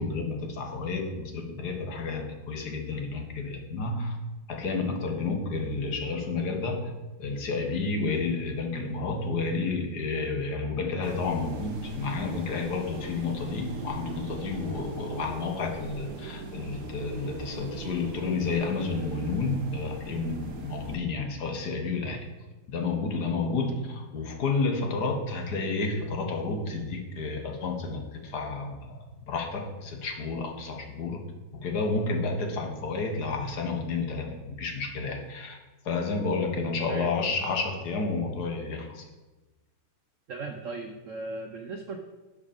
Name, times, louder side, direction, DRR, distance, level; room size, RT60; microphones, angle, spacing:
voice 1, 0.0-4.2 4.5-6.9 7.2-22.2 22.7-29.0 29.3-31.2 31.6-35.6 35.8-39.0, left 3 dB, 55° left, 3 dB, 1.7 m, -30 dB
sound 1, 11.0-21.0, right 3 dB, 60° right, 1.6 m, -41 dB
voice 2, 40.3-42.0, right 3 dB, 75° right, 5 dB, 0.7 m, -37 dB
11.5 x 5.1 x 5.1 m, 1.1 s
omnidirectional pair, 2.2 m